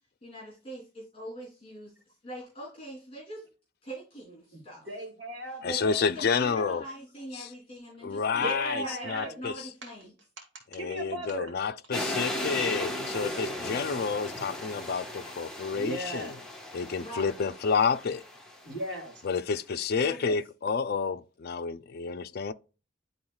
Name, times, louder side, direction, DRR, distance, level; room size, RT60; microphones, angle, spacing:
voice 1, 0.2-1.9 2.2-3.4 3.8-4.9 5.6-10.1 17.0-17.4 20.0-20.4, right 1 dB, 30° left, 3.2 m, -42 dB
voice 2, 4.9-6.0 8.3-9.3 10.4-10.5 10.7-11.5 15.7-16.3 18.6-19.2, right 1 dB, 70° right, 2.1 m, -36 dB
voice 3, 5.6-6.8 7.4-7.5 8.0-9.5 10.7-16.3 16.7-18.2 19.2-22.5, left 5 dB, 55° left, 0.5 m, -30 dB
sound 1, 11.9-19.0, left 1 dB, 5° left, 1.2 m, -36 dB
10.5 x 3.9 x 2.3 m
head